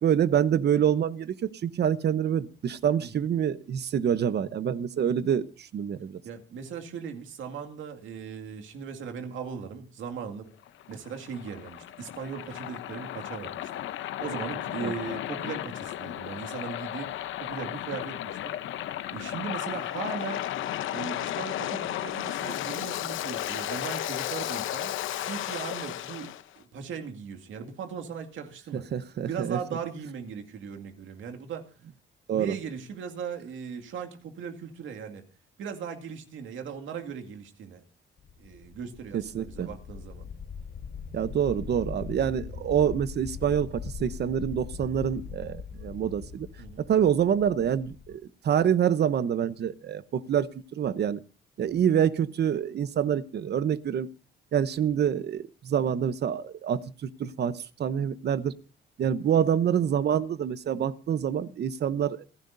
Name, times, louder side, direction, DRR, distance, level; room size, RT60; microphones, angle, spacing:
voice 1, 0.0-6.2 14.8-14.9 28.7-29.6 32.3-32.5 39.1-39.7 41.1-46.5 46.8-51.2 51.6-54.1 54.5-58.5 59.0-62.2, right 9 dB, 55° right, 0.9 m, -26 dB
voice 2, 6.2-10.5 10.9-13.7 14.0-17.1 17.4-18.5 19.1-20.4 20.9-24.9 25.3-28.9 29.3-31.7 32.3-35.2 35.6-37.8 38.4-40.3 42.4-42.5 46.6-46.9 51.6-51.8, right 6 dB, 75° right, 2.2 m, -38 dB
Waves surf, 10.6-26.4, left 12 dB, 80° left, 0.8 m, -34 dB
sound 1, 38.2-48.2, left 6 dB, 60° left, 4.5 m, -41 dB
27.5 x 10.5 x 2.6 m
cardioid pair, 90°, 20 cm